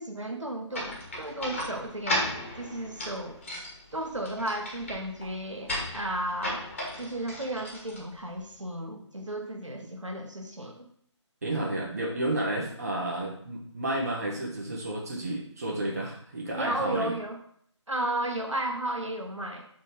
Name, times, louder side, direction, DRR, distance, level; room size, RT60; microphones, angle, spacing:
voice 1, 0.0-3.4 3.9-6.6 7.0-10.9 16.6-17.4 17.9-19.7, right 1 dB, 80° right, 2 dB, 1.4 m, -34 dB
sound 1, 0.7-8.6, left 1 dB, 25° left, 1.5 m, -36 dB
voice 2, 11.4-17.1, right 1 dB, 30° right, -2 dB, 1.1 m, -31 dB
5.1 x 3.9 x 5.8 m, 0.64 s
figure-of-eight pair, 155°, 16 cm